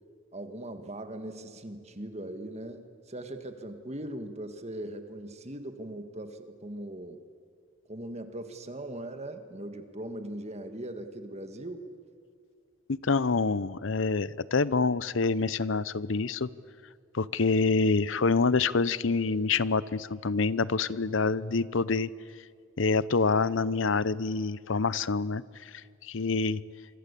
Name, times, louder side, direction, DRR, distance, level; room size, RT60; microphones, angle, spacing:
voice 1, 0.3-2.8 3.1-7.2 7.9-11.9, right 1 dB, 30° right, 8 dB, 1.8 m, -40 dB
voice 2, 12.9-16.5 17.1-22.1 22.8-26.6, left 4 dB, 65° left, 18 dB, 0.7 m, -27 dB
27.0 x 24.5 x 8.4 m, 2.2 s
head